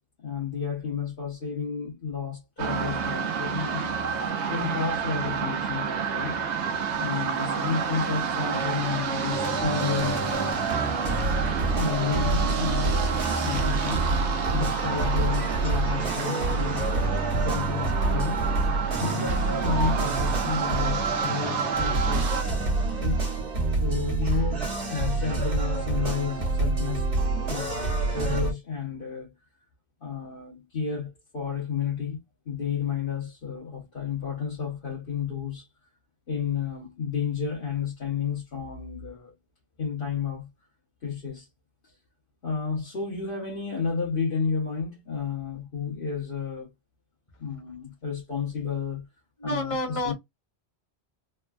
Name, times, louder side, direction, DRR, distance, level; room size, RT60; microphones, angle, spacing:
voice 1, 0.2-3.9 4.5-6.4 7.0-10.5 11.7-14.1 14.5-18.4 19.0-22.7 23.0-23.2 23.8-27.0 27.5-29.3 30.0-32.2 32.4-35.7 36.3-39.3 39.8-40.5 41.0-41.5 42.4-46.7 47.4-49.1 49.4-50.1, left 6 dB, 55° left, 1.2 m, -31 dB
sound 1, 2.6-22.4, right 6 dB, 85° right, 1.0 m, -29 dB
sound 2, 9.3-28.5, right 3 dB, 55° right, 1.3 m, -27 dB
voice 2, 49.4-50.1, left 1 dB, 30° left, 1.1 m, -29 dB
3.5 x 2.2 x 2.4 m
omnidirectional pair, 1.1 m